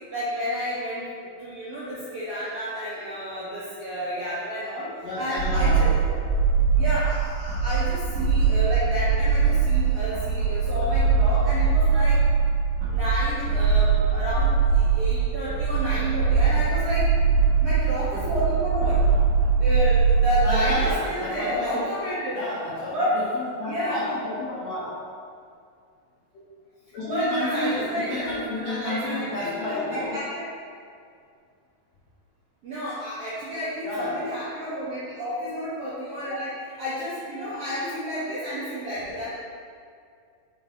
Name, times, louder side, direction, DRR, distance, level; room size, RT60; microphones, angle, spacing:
voice 1, 0.1-5.9 6.7-12.2 12.9-17.0 17.6-19.0 19.6-22.4 22.9-23.1 23.6-24.1 27.0-30.4 32.6-36.5 36.8-39.3, equal, 85° right, -10 dB, 1.3 m, -30 dB
voice 2, 5.0-5.9 6.5-6.8 20.4-21.8 22.3-25.0 26.9-30.2 33.8-34.3, left 1 dB, 75° left, -8 dB, 1.6 m, -31 dB
sound 1, 5.4-20.9, right 5 dB, 65° right, 2.2 m, -22 dB
6.2 x 5.0 x 3.8 m, 2.3 s
omnidirectional pair, 4.4 m